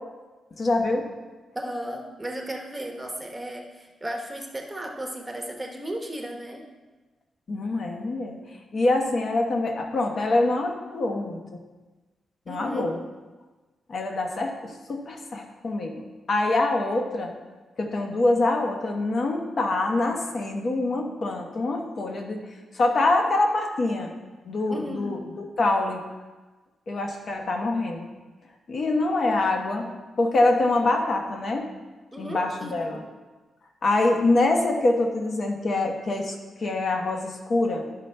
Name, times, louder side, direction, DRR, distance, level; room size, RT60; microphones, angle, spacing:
voice 1, 0.6-1.1 7.5-11.4 12.5-13.0 13.9-17.3 17.8-22.4 22.7-24.1 24.4-26.0 26.9-28.1 28.7-29.8 30.2-31.7 32.2-33.0 33.8-37.9, left 2 dB, 45° left, 2 dB, 1.0 m, -25 dB
voice 2, 1.5-6.6 12.5-12.9 24.7-25.2 29.3-30.0 32.1-33.1, right 1 dB, 10° right, 1 dB, 0.9 m, -35 dB
12.0 x 5.3 x 3.3 m, 1.2 s
wide cardioid pair, 145°, 0 cm